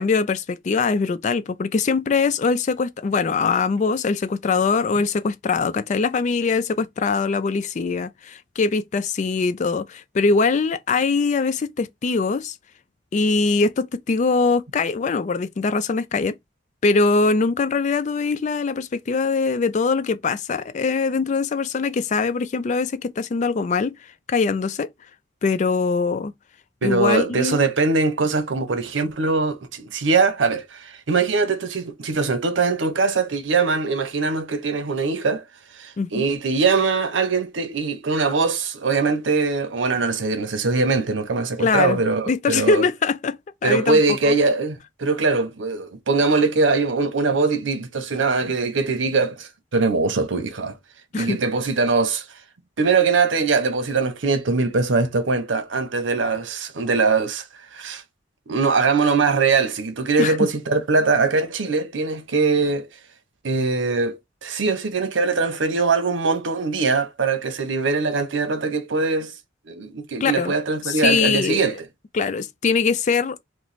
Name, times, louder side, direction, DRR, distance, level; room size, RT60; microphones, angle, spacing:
voice 1, 0.0-12.5 13.1-16.3 16.8-24.0 24.3-24.9 25.4-26.3 26.8-27.7 36.0-36.3 41.6-42.0 42.3-44.0 44.3-44.4 51.1-51.4 60.2-60.4 70.2-70.5 70.8-71.7 72.1-73.4, left 4 dB, 40° left, 0.3 m, -22 dB
voice 2, 26.8-35.4 35.7-42.8 43.6-50.8 51.1-52.2 52.8-58.0 58.5-62.9 63.4-69.3 69.7-71.8, right 4 dB, 90° right, 0.7 m, -22 dB
3.0 x 2.2 x 4.0 m
head